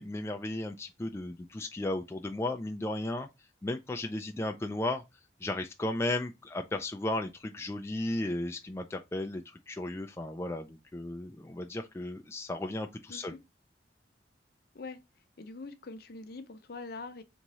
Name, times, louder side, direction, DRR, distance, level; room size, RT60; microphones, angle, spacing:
voice 1, 0.0-3.3 3.6-5.0 5.4-13.3, left 1 dB, 15° left, 0.3 m, -35 dB
voice 2, 13.1-13.4 14.7-15.0 15.4-17.2, left 3 dB, 55° left, 0.6 m, -43 dB
3.5 x 3.0 x 4.0 m
head